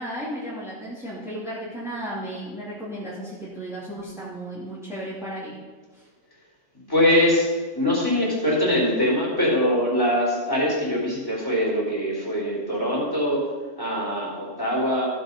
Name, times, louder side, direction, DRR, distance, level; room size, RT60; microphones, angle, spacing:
voice 1, 0.0-5.6 5.9-6.1, right 1 dB, ahead, -9 dB, 2.5 m, -34 dB
voice 2, 6.9-7.5 7.7-13.5 13.8-15.1, left 1 dB, 15° left, -6 dB, 3.7 m, -22 dB
15.5 x 5.5 x 5.3 m, 1.3 s
omnidirectional pair, 1.3 m